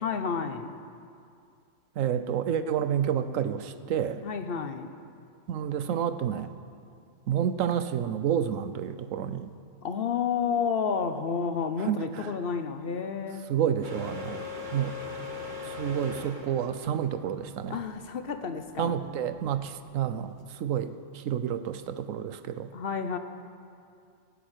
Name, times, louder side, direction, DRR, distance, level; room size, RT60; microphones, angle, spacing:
voice 1, 0.0-0.7 4.2-4.9 9.8-13.5 17.7-19.0 22.7-23.2, left 6 dB, 50° left, 9 dB, 1.0 m, -30 dB
voice 2, 2.0-4.2 5.5-6.5 7.3-9.5 11.8-12.3 13.5-14.4 14.7-14.9 15.6-17.8 18.8-22.7, right 9 dB, 75° right, 11 dB, 1.1 m, -29 dB
sound 1, 13.8-20.4, left 4 dB, 40° right, 1.3 m, -40 dB
18.0 x 7.1 x 9.0 m, 2.4 s
omnidirectional pair, 1.4 m